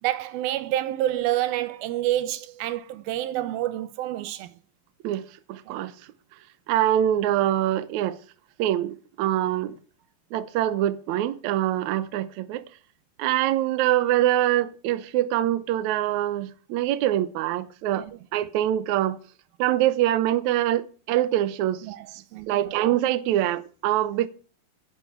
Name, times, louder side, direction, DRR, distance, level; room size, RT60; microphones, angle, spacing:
voice 1, 0.0-4.5 5.7-5.8 17.9-18.0 21.8-22.7, right 14 dB, 90° right, 2.7 m, -28 dB
voice 2, 5.0-5.9 6.7-8.2 8.6-9.8 10.3-12.6 13.2-18.1 18.3-19.2 19.6-21.9 22.5-24.3, right 13 dB, 70° right, 2.0 m, -24 dB
10.5 x 8.4 x 9.2 m
omnidirectional pair, 4.2 m